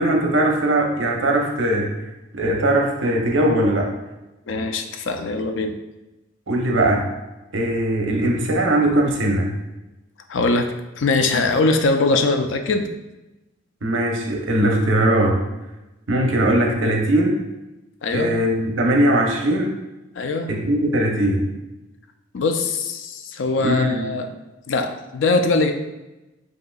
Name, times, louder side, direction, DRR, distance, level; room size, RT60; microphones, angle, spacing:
voice 1, 0.0-2.0 2.3-3.9 6.5-7.1 7.5-9.5 13.8-15.4 16.1-17.4 18.1-19.8 20.5-21.5 23.6-24.1, right 1 dB, 75° right, 1 dB, 0.8 m, -20 dB
voice 2, 4.5-5.7 10.3-10.7 11.0-12.9 18.0-18.3 20.2-20.5 22.3-24.3 24.7-25.7, left 3 dB, 70° left, 6 dB, 0.4 m, -21 dB
7.7 x 2.8 x 2.3 m, 1.0 s
head